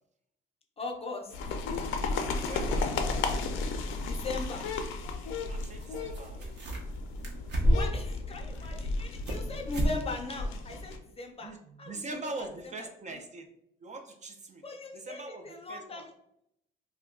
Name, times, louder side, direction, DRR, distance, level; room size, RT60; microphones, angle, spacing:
voice 1, 0.8-1.3 4.0-4.7 7.7-11.5 11.8-12.5 12.8-13.2 14.6-16.1, left 3 dB, 30° left, 2 dB, 0.5 m, -39 dB
sound 1, 1.3-11.0, left 3 dB, 85° left, 0.4 m, -34 dB
voice 2, 2.2-3.0 5.5-6.6 11.4-13.5 13.8-14.7 14.9-16.0, right 3 dB, 35° right, 5 dB, 0.4 m, -43 dB
sound 2, 5.8-5.9 6.1-7.0 7.2-8.0 8.5-9.4 9.7-10.0 10.3-10.4 10.9-11.0, equal, 60° right, 0.8 m, -28 dB
2.2 x 2.2 x 3.5 m, 0.75 s
cardioid pair, 90°, 20 cm